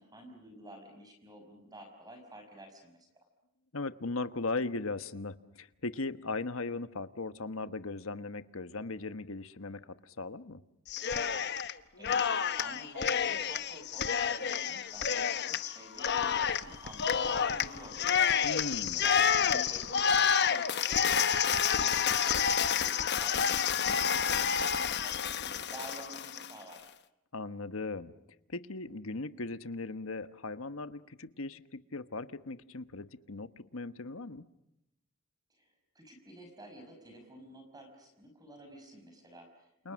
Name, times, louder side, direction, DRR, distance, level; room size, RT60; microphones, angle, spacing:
voice 1, 0.0-3.1 11.6-18.0 18.8-26.9 35.5-39.9, right 1 dB, 20° right, 4 dB, 5.4 m, -51 dB
voice 2, 3.7-10.6 18.4-19.1 27.3-28.1 28.5-34.4 39.8-39.9, left 3 dB, 70° left, 12 dB, 1.3 m, -38 dB
Cheering, 10.9-11.7 12.0-26.5, left 7 dB, 50° left, 1.0 m, -29 dB
29.0 x 28.5 x 6.4 m, 0.85 s
head